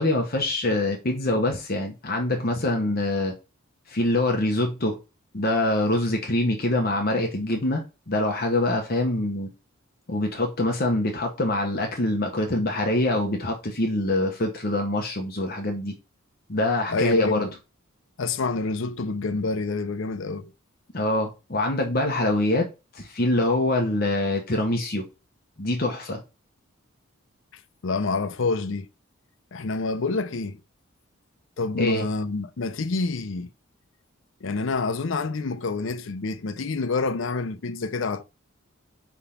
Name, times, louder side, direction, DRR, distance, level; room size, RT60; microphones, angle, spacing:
voice 1, 0.0-3.3 3.9-5.0 5.3-9.5 10.1-15.9 16.5-17.5 20.9-22.7 22.9-25.0 25.6-26.2 31.8-32.1, left 1 dB, 45° left, 1.0 m, -24 dB
voice 2, 16.9-17.5 18.2-20.5 27.5-28.9 29.5-30.6 31.6-33.5 34.4-38.2, left 3 dB, 65° left, 0.6 m, -27 dB
4.9 x 3.7 x 5.6 m
head